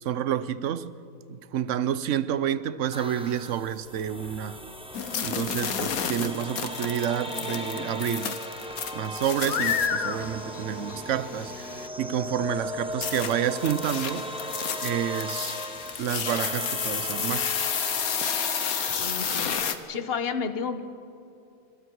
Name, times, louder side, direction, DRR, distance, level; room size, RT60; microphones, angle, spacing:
voice 1, 0.0-0.9 1.3-4.6 5.2-8.4 8.9-14.3 14.8-15.6 16.0-17.5, right 9 dB, 65° right, 1.1 m, -29 dB
sound 1, 2.9-19.5, equal, 5° right, 1.5 m, -37 dB
sound 2, 4.9-11.9 13.0-19.8, left 7 dB, 85° left, 1.6 m, -31 dB
Crumpling crinkling, 13.9-19.1, right 1 dB, 30° right, 7.1 m, -56 dB
voice 2, 19.0-19.5 19.9-20.8, left 6 dB, 45° left, 1.4 m, -31 dB
26.0 x 26.0 x 4.8 m
omnidirectional pair, 1.5 m